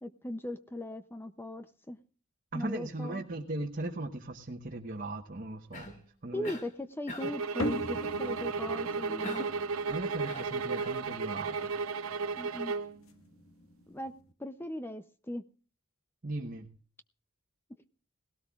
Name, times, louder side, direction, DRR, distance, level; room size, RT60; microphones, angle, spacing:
voice 1, 0.0-2.0 2.5-3.2 6.3-9.5 12.4-12.7 13.9-14.1 14.4-15.5, left 1 dB, 10° left, 10 dB, 0.5 m, -39 dB
voice 2, 2.5-6.5 9.9-11.8 16.2-16.7, right 2 dB, 40° right, 2 dB, 1.1 m, -38 dB
Cough, 5.7-6.1 6.4-6.7 7.1-7.5 9.2-9.7 10.3-11.0, left 1 dB, 35° left, 1.8 m, -43 dB
sound 1, 7.2-13.0, right 4 dB, 80° right, 0.8 m, -34 dB
sound 2, 7.6-14.3, left 1 dB, 80° left, 1.7 m, -42 dB
19.0 x 17.0 x 2.4 m, 0.41 s
head